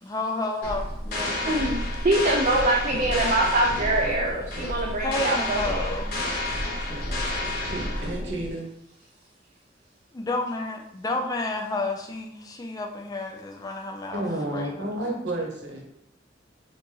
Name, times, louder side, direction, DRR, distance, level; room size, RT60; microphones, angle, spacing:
voice 1, 0.0-1.6 5.0-6.2 10.1-14.2 14.5-15.2, left 2 dB, 20° left, 2 dB, 0.4 m, -31 dB
sound 1, 0.6-8.5, left 1 dB, 55° left, 0.9 m, -30 dB
voice 2, 1.5-5.9, right 1 dB, 45° right, -1 dB, 0.4 m, -24 dB
voice 3, 7.7-8.7 14.1-15.8, right 1 dB, 70° right, -1 dB, 1.0 m, -31 dB
2.9 x 2.6 x 3.8 m, 0.77 s
head